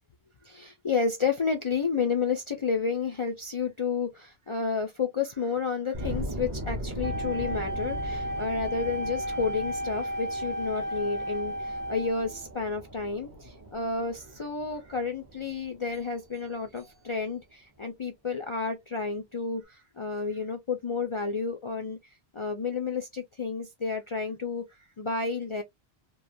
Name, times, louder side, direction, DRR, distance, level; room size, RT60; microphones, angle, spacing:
voice 1, 0.4-22.0 22.3-25.6, left 5 dB, 50° left, 0.3 m, -31 dB
sound 1, 5.9-16.7, equal, 25° right, 0.6 m, -39 dB
Wind instrument woodwind instrument, 7.0-12.5, equal, 45° right, 1.0 m, -33 dB
3.0 x 2.0 x 2.5 m
omnidirectional pair, 1.1 m